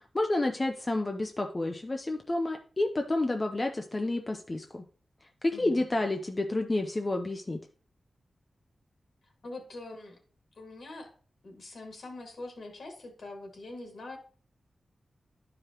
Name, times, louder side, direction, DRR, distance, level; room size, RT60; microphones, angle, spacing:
voice 1, 0.1-4.8 5.4-7.6, left 2 dB, 25° left, 4 dB, 0.6 m, -30 dB
voice 2, 5.5-5.8 9.4-10.2 10.5-11.1 11.4-14.2, left 2 dB, 65° left, 2 dB, 2.3 m, -43 dB
11.5 x 4.9 x 3.0 m, 0.42 s
wide cardioid pair, 105°, 0 cm